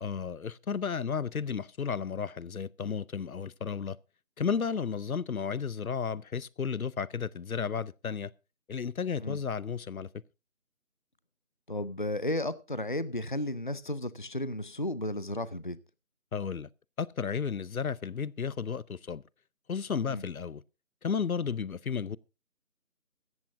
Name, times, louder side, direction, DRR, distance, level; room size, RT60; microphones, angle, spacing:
voice 1, 0.0-4.0 4.4-8.3 8.7-10.1 16.3-16.7 17.0-19.2 19.7-20.6 21.0-22.2, left 6 dB, 80° left, 0.7 m, -33 dB
voice 2, 11.7-15.8 20.1-20.2, left 1 dB, 35° left, 0.5 m, -33 dB
16.0 x 14.0 x 2.6 m
figure-of-eight pair, 160°, 42 cm